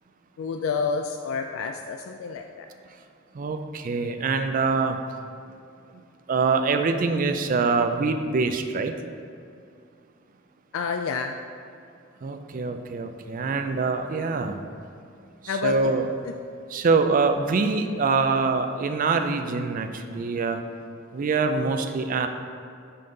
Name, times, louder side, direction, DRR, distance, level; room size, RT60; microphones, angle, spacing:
voice 1, 0.4-2.7 10.7-11.4 15.5-16.0 16.2-16.3, left 5 dB, 85° left, 5 dB, 0.3 m, -29 dB
voice 2, 3.3-5.0 6.3-8.9 12.2-14.6 15.6-16.0 16.7-20.6 21.1-22.3, right 4 dB, 45° right, 7 dB, 0.4 m, -24 dB
5.6 x 5.4 x 3.8 m, 2.5 s
head